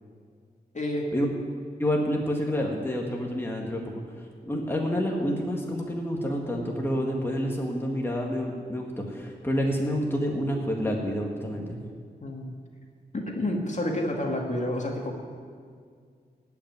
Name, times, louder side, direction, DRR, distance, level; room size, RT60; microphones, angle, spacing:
voice 1, 0.7-1.1 12.2-12.5 13.1-15.2, left 1 dB, 45° left, 0 dB, 2.0 m, -29 dB
voice 2, 1.8-4.0 4.4-11.8, equal, 15° left, -1 dB, 1.8 m, -28 dB
16.5 x 6.0 x 9.4 m, 2.1 s
wide cardioid pair, 80°, 17 cm